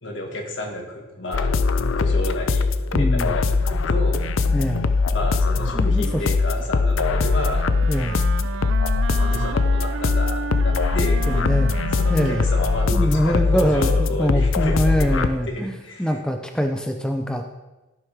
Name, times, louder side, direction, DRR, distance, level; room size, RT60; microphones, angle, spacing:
voice 1, 0.0-1.6 1.9-2.7 2.9-4.3 5.1-7.7 9.2-11.7 12.0-16.2, left 1 dB, 65° left, 1 dB, 1.9 m, -31 dB
sound 1, 1.3-15.3, left 4 dB, 85° left, 0.5 m, -21 dB
voice 2, 2.9-3.3 4.5-4.9 5.7-6.2 7.9-8.2 10.9-11.8 12.1-12.4 12.9-17.5, equal, 5° left, 4 dB, 0.5 m, -24 dB
Wind instrument woodwind instrument, 6.9-14.3, right 5 dB, 70° right, 0.4 m, -33 dB
15.5 x 6.6 x 3.6 m, 1.1 s
head